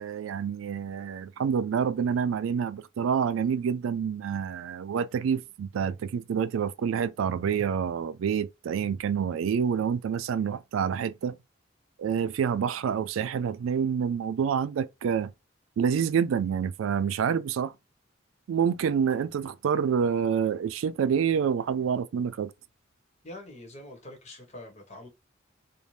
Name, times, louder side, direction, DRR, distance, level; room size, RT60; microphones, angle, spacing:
voice 1, 0.0-11.4 12.0-15.3 15.8-17.7 18.5-22.5, right 7 dB, 85° right, 0.3 m, -27 dB
voice 2, 23.2-25.1, left 1 dB, 35° left, 1.0 m, -44 dB
2.7 x 2.1 x 3.1 m
head